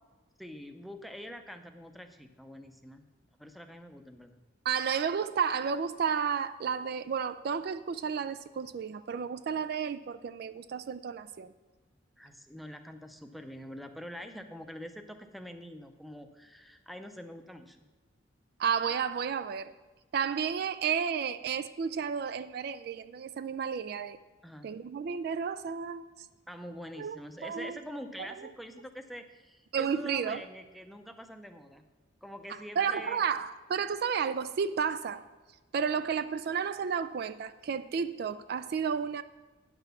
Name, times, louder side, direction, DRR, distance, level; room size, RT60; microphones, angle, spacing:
voice 1, 0.4-3.0 3.4-4.4 12.2-17.8 24.4-24.7 26.5-31.8 32.2-33.3 35.9-36.0, equal, ahead, 0.6 m, -45 dB
voice 2, 4.6-11.5 18.6-19.7 20.1-24.2 24.6-26.1 27.0-27.8 28.2-28.5 29.7-30.4 32.8-35.2 35.7-39.2, right 7 dB, 55° right, 0.3 m, -32 dB
9.4 x 6.1 x 6.8 m
head